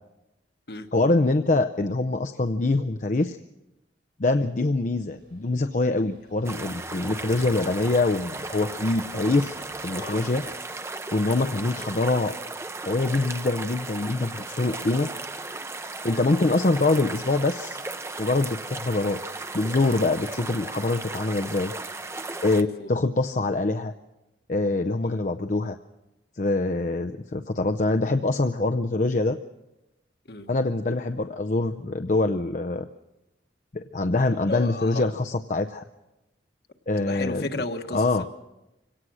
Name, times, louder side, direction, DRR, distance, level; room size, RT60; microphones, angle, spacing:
voice 1, 0.9-3.4 4.2-10.4 11.1-12.3 12.8-15.1 16.0-17.8 18.2-19.2 19.5-21.7 22.4-23.9 24.5-25.8 26.4-29.4 30.5-32.9 33.7-35.8 36.9-37.5 37.9-38.3, left 2 dB, 45° left, 7 dB, 0.6 m, -24 dB
sound 1, 5.0-10.6, right 1 dB, 75° right, 4.8 m, -49 dB
sound 2, 6.4-22.6, right 3 dB, 15° right, 0.7 m, -36 dB
voice 2, 9.9-10.3 16.0-16.2 22.6-22.9 25.0-25.2 30.3-30.5 34.4-35.1 37.0-38.3, left 2 dB, 60° left, 6 dB, 1.5 m, -34 dB
24.5 x 18.0 x 6.3 m, 0.96 s
head